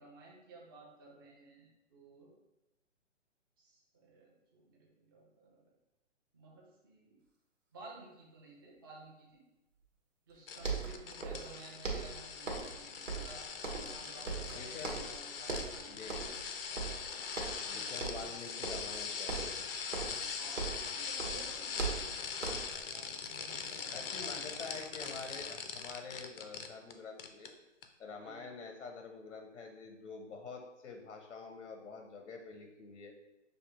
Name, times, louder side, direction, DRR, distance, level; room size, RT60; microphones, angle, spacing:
voice 1, 0.0-2.3 3.6-5.7 6.3-7.2 7.7-9.4 10.3-16.3 17.0-17.2 17.7-18.3 20.0-22.2 22.9-24.7 28.2-28.5, right 3 dB, 20° right, -3 dB, 0.6 m, -55 dB
sound 1, 10.3-10.4 10.6-11.5 11.8-12.8 13.1-14.0 14.3-15.2 15.5-15.8 16.1-16.5 16.8-17.7 18.0-18.3 18.6-19.0 19.3-20.9 21.2-22.8, right 4 dB, 90° right, 1.3 m, -39 dB
sound 2, 10.5-26.9 27.2-27.5 27.8-27.9, left 6 dB, 50° left, 0.5 m, -41 dB
voice 2, 14.2-15.0 15.9-16.3 17.7-19.7 23.9-27.5 28.0-33.1, left 4 dB, 85° left, 3 dB, 0.8 m, -47 dB
6.4 x 2.7 x 3.0 m, 0.94 s
hypercardioid pair, 160°, 37 cm